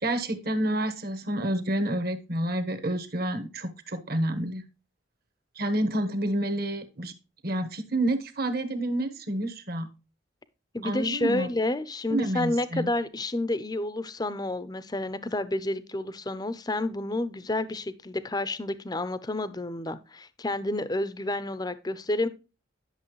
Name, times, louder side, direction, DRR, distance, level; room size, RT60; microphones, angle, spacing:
voice 1, 0.0-4.6 5.6-7.1 7.4-9.9 10.8-11.5 12.1-12.9, right 1 dB, 50° right, 1.3 m, -29 dB
voice 2, 10.7-22.3, left 2 dB, 20° left, 0.6 m, -30 dB
11.0 x 6.5 x 3.1 m
head